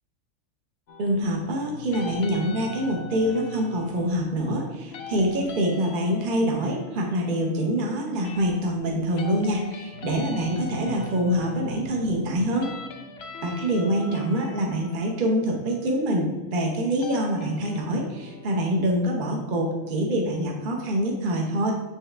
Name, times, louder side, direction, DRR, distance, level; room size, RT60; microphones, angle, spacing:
sound 1, 0.9-20.8, left 4 dB, 65° left, 0.7 m, -42 dB
voice 1, 1.0-12.7 13.4-21.7, equal, 45° right, 0 dB, 0.8 m, -25 dB
6.7 x 4.8 x 3.3 m, 1.2 s
omnidirectional pair, 1.5 m